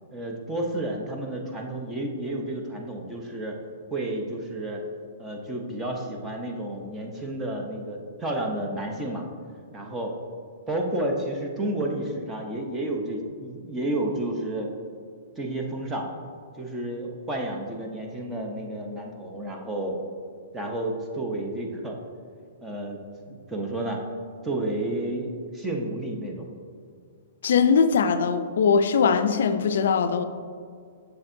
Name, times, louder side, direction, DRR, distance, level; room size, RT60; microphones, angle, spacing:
voice 1, 0.1-3.6 3.9-4.8 5.2-9.3 9.7-10.2 10.7-14.7 15.4-16.1 16.6-20.0 20.5-22.0 22.6-24.0 24.4-26.5, right 1 dB, 10° right, 1 dB, 0.7 m, -31 dB
voice 2, 27.4-30.2, left 6 dB, 70° left, 10 dB, 0.3 m, -21 dB
7.0 x 6.5 x 2.6 m, 2.2 s
hypercardioid pair, 160°, 0 cm